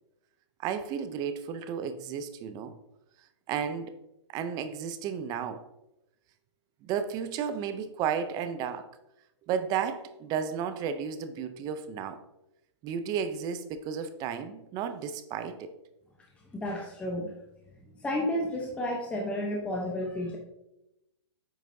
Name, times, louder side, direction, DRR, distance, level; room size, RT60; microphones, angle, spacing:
voice 1, 0.6-2.7 3.5-3.9 4.3-5.6 6.8-8.9 9.5-12.2 12.8-15.7, right 7 dB, 25° right, 10 dB, 0.5 m, -33 dB
voice 2, 16.5-17.3 18.0-20.4, left 1 dB, 10° left, -1 dB, 0.8 m, -31 dB
8.7 x 5.9 x 2.7 m, 0.89 s
hypercardioid pair, 140°, 15 cm